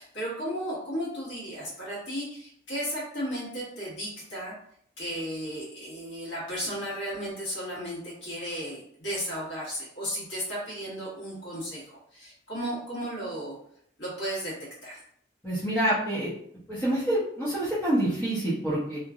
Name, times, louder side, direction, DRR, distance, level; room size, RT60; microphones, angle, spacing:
voice 1, 0.0-4.5 5.0-13.5 14.0-14.5 14.8-15.0, equal, 80° left, -6 dB, 1.5 m, -34 dB
voice 2, 15.4-16.3 16.7-19.0, right 1 dB, 10° left, -12 dB, 0.9 m, -27 dB
2.9 x 2.4 x 2.4 m, 0.68 s
head